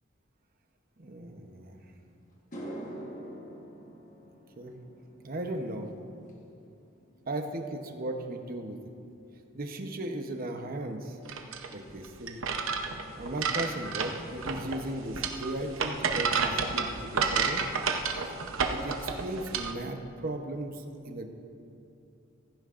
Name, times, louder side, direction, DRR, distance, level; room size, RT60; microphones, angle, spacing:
voice 1, 1.0-1.8 4.6-4.7 5.2-5.9 7.3-8.8 9.5-11.2 11.7-12.4 13.1-17.6 18.7-20.0 20.2-21.3, right 1 dB, 45° right, 4 dB, 0.9 m, -36 dB
sound 1, 1.8-1.9 2.3-10.8 11.1-11.5 15.1-15.2 16.9-17.0 17.3-17.4 17.7-18.2, right 1 dB, 40° left, 1.3 m, -48 dB
sound 2, 11.2-19.7, right 5 dB, 80° right, 0.8 m, -31 dB
15.0 x 15.0 x 2.5 m, 2.7 s
head